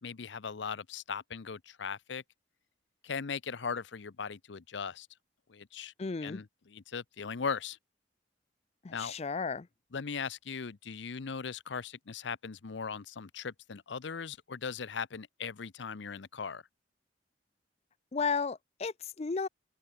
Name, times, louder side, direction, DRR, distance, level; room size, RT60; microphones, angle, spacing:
voice 1, 0.0-2.2 3.0-5.1 5.5-5.9 6.2-7.8 8.9-9.1 9.9-16.6, left 6 dB, 80° left, 0.7 m, -39 dB
voice 2, 6.0-6.4 8.8-9.7 18.1-19.5, left 5 dB, 35° left, 0.5 m, -33 dB
open air
head